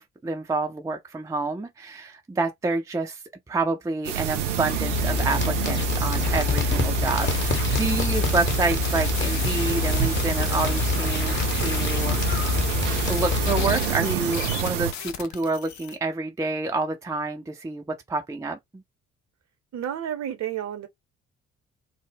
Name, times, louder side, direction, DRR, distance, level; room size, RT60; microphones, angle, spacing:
voice 1, 0.0-3.2 3.5-12.5 13.1-18.8, right 3 dB, 10° right, 0.5 m, -28 dB
sound 1, 4.0-14.9, right 10 dB, 80° right, 0.5 m, -28 dB
sound 2, 4.6-14.0, left 6 dB, 30° left, 1.0 m, -27 dB
sound 3, 7.2-16.0, left 9 dB, 50° left, 0.6 m, -36 dB
voice 2, 19.7-20.9, right 10 dB, 50° right, 0.8 m, -31 dB
2.0 x 2.0 x 3.5 m
figure-of-eight pair, 45°, 36 cm